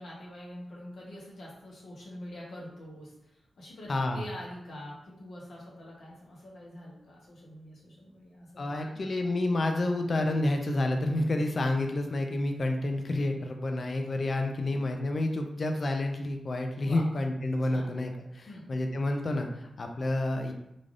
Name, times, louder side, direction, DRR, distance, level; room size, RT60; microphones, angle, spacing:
voice 1, 0.0-9.3 14.6-14.8 16.8-17.0 17.7-17.9 18.5-18.7, left 1 dB, 75° left, -4 dB, 0.9 m, -45 dB
voice 2, 3.9-4.2 8.6-20.5, left 2 dB, 40° left, 4 dB, 0.3 m, -29 dB
3.2 x 2.4 x 2.5 m, 0.84 s
wide cardioid pair, 175°, 0 cm